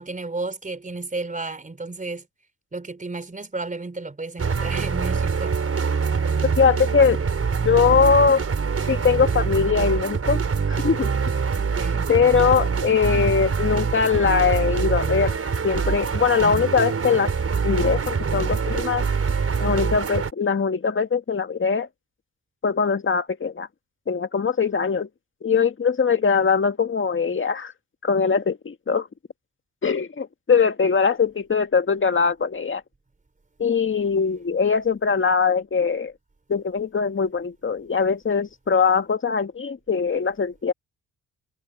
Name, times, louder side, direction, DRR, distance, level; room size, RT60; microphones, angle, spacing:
voice 1, 0.0-2.3 2.7-5.6 11.8-12.1, right 3 dB, 20° right, 3.7 m, -32 dB
sound 1, 4.4-20.3, right 5 dB, 40° right, 4.5 m, -24 dB
voice 2, 6.6-7.2 7.6-8.4 8.9-10.4 10.7-11.1 12.1-15.4 15.6-17.3 17.6-19.0 19.6-21.9 22.6-23.7 24.1-25.1 25.4-27.7 28.0-29.1 29.8-32.8 33.6-36.1 36.5-40.7, left 5 dB, 35° left, 1.8 m, -21 dB
cardioid pair, 90°, 37 cm